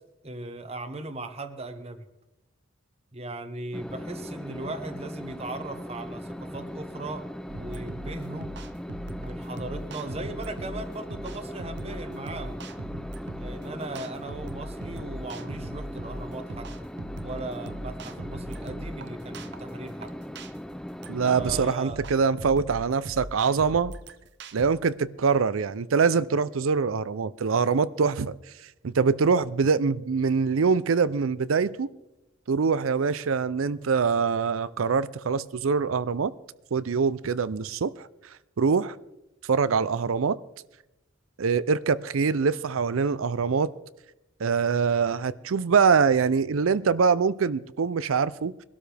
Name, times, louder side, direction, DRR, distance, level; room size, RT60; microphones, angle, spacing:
voice 1, 0.2-2.0 3.1-7.2 7.6-8.5 9.2-12.6 13.4-16.9 17.2-20.1 21.2-22.1, right 2 dB, 30° right, 9 dB, 1.0 m, -38 dB
sound 1, 3.7-21.7, equal, 5° left, 0.4 m, -39 dB
sound 2, 7.5-24.7, right 1 dB, 55° right, 0.8 m, -40 dB
voice 2, 21.1-23.9 24.5-28.3 28.8-31.9 32.5-36.3 36.7-38.1 38.6-38.9 39.5-40.4 41.4-43.7 44.4-48.5, right 5 dB, 85° right, 17 dB, 0.5 m, -24 dB
22.0 x 12.5 x 3.4 m, 0.93 s
head